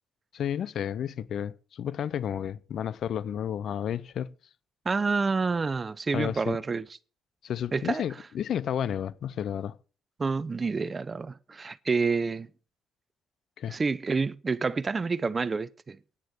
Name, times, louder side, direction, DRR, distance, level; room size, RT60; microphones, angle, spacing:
voice 1, 0.3-4.3 6.1-6.6 7.4-9.8 13.6-13.8, left 9 dB, 65° left, 0.6 m, -32 dB
voice 2, 4.8-6.9 7.7-8.0 10.2-12.5 13.7-16.0, right 4 dB, 30° right, 0.6 m, -28 dB
9.9 x 9.3 x 6.2 m
cardioid pair, 90°, 0 cm